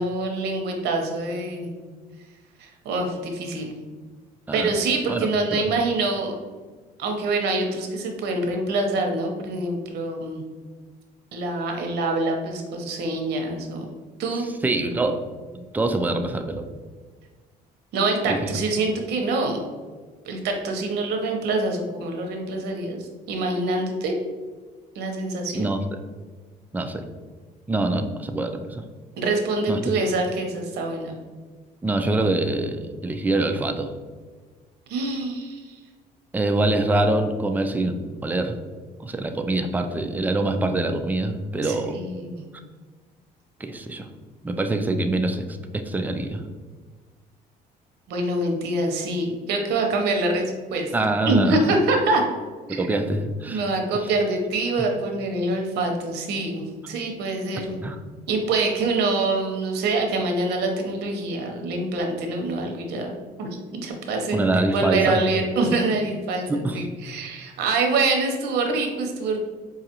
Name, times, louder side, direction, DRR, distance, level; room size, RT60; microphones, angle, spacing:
voice 1, 0.0-1.7 2.6-3.7 4.5-6.3 7.0-10.4 11.3-13.8 14.2-14.5 17.9-19.6 20.3-24.2 24.9-25.7 29.2-31.1 34.9-35.7 41.6-42.4 48.1-50.9 51.3-52.2 52.7-52.8 53.5-57.8 58.3-63.1 63.4-69.4, right 2 dB, 75° right, 2 dB, 0.8 m, -25 dB
voice 2, 5.1-5.7 14.6-15.2 15.5-16.7 18.3-18.4 25.5-25.8 26.7-27.0 27.7-28.8 29.7-29.8 31.8-33.9 36.3-38.6 39.0-42.0 43.6-44.1 44.4-46.4 50.9-51.6 52.7-53.6 54.0-54.1 57.8-58.0 64.3-65.2 66.5-66.8, right 2 dB, 10° right, 6 dB, 0.3 m, -25 dB
4.7 x 2.4 x 2.8 m, 1.4 s
cardioid pair, 110°, 17 cm